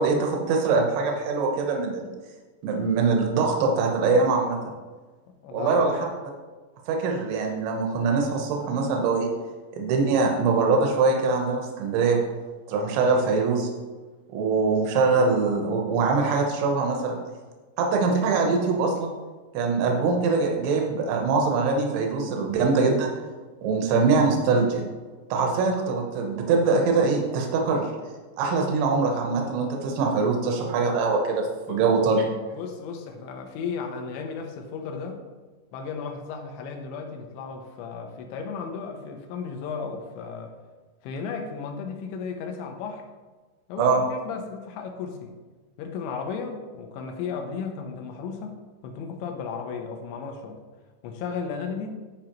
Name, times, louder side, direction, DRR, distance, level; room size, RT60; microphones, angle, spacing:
voice 1, 0.0-2.0 2.6-4.7 5.5-5.9 6.9-9.3 9.8-12.2 12.7-13.7 14.3-17.2 17.8-19.1 19.5-23.1 23.6-24.8 25.3-27.9 28.4-32.3 43.8-44.0, right 4 dB, 90° right, 1 dB, 3.3 m, -23 dB
voice 2, 5.4-6.0 31.7-31.8 32.5-35.2 35.7-40.5 41.0-43.1 43.7-45.4 45.8-50.6 51.0-51.9, left 5 dB, 85° left, 3 dB, 3.2 m, -34 dB
13.5 x 5.1 x 3.0 m, 1.3 s
omnidirectional pair, 5.1 m